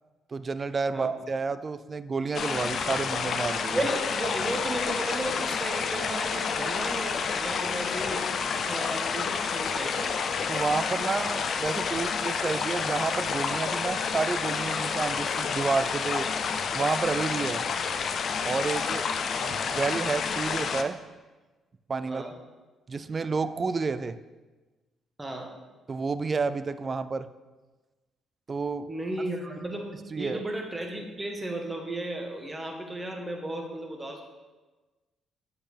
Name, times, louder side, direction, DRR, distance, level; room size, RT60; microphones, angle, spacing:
voice 1, 0.3-3.8 10.5-16.3 16.7-17.6 18.4-19.1 19.7-21.0 21.9-22.2 22.9-24.2 25.9-27.3 28.5-28.9 30.1-30.4, right 4 dB, 35° right, 13 dB, 0.3 m, -30 dB
sound 1, 2.3-20.8, left 6 dB, 55° left, 0.5 m, -29 dB
voice 2, 3.7-8.3 8.6-10.2 19.4-19.6 22.1-22.3 25.2-25.5 28.9-29.9 30.1-34.2, right 1 dB, 20° right, 3 dB, 1.2 m, -34 dB
7.7 x 6.6 x 3.4 m, 1.2 s
cardioid pair, 90°, 0 cm